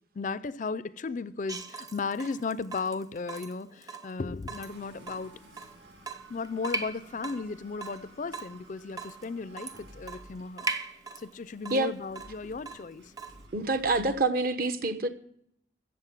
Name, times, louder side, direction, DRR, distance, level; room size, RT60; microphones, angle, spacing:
voice 1, 0.1-5.4 6.3-10.7 11.2-13.1, left 4 dB, 40° left, 0.4 m, -35 dB
Water tap faucet / Drip, 1.5-13.5, right 3 dB, 20° right, 0.7 m, -41 dB
sound 1, 4.6-14.3, right 1 dB, 80° right, 6.1 m, -55 dB
voice 2, 13.5-15.1, right 2 dB, 50° right, 1.1 m, -27 dB
14.5 x 7.8 x 7.4 m
head